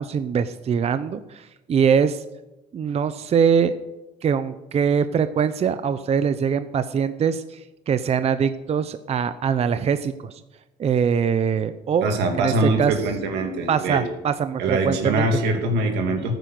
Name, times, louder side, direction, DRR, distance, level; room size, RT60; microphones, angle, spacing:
voice 1, 0.0-2.2 2.7-3.7 4.2-10.4 10.8-12.1 12.4-13.0 13.7-15.4, right 7 dB, 40° right, 12 dB, 0.6 m, -23 dB
voice 2, 12.0-14.0 14.6-16.4, right 2 dB, 85° right, 3 dB, 2.7 m, -23 dB
14.0 x 9.2 x 6.5 m, 1.0 s
cardioid pair, 110°, 17 cm